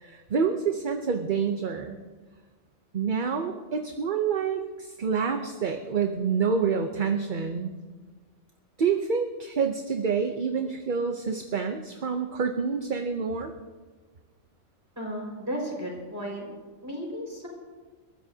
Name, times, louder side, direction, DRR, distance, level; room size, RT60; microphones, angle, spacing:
voice 1, 0.0-2.0 2.9-7.7 8.8-13.5, right 6 dB, 45° right, 5 dB, 0.8 m, -27 dB
voice 2, 14.9-16.5 16.8-17.5, equal, 15° right, -2 dB, 5.0 m, -34 dB
30.0 x 14.0 x 2.8 m, 1.4 s
omnidirectional pair, 1.3 m